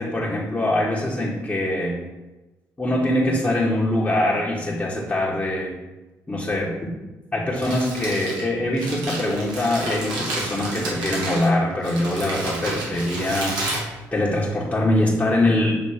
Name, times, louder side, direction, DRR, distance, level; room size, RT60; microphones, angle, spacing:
voice 1, 0.0-2.0 2.8-5.7 6.3-6.7 7.3-15.8, left 1 dB, 20° left, -6 dB, 1.7 m, -23 dB
Crumpling crinkling, 7.3-14.7, right 2 dB, 80° right, 2.0 m, -31 dB
7.3 x 3.5 x 5.1 m, 1.1 s
supercardioid pair, 65°, 7 cm